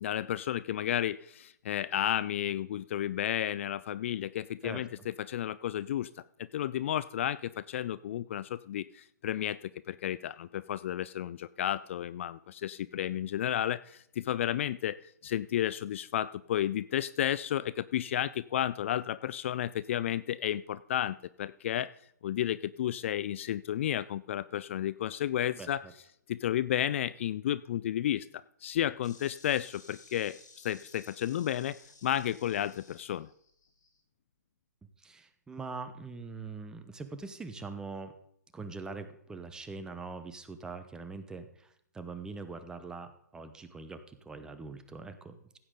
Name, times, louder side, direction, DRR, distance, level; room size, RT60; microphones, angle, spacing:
voice 1, 0.0-6.1 6.4-21.9 22.2-25.8 26.3-28.3 28.6-33.3, left 11 dB, 45° left, 18 dB, 0.3 m, -32 dB
Insect, 29.0-34.0, left 4 dB, 75° left, 2.9 m, -57 dB
voice 2, 35.0-38.1 38.5-41.7 41.9-45.6, right 4 dB, 5° right, 9 dB, 0.9 m, -43 dB
15.5 x 8.5 x 3.8 m, 0.69 s
hypercardioid pair, 135°, 10 cm